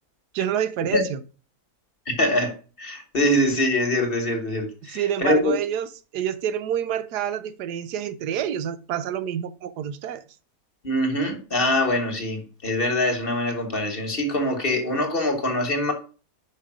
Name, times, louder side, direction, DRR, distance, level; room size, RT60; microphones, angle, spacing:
voice 1, 0.3-1.2 4.8-10.2, right 9 dB, 90° right, 1.3 m, -28 dB
voice 2, 2.1-5.5 10.8-15.9, left 1 dB, 40° left, 1.4 m, -24 dB
5.6 x 5.0 x 6.0 m
omnidirectional pair, 1.7 m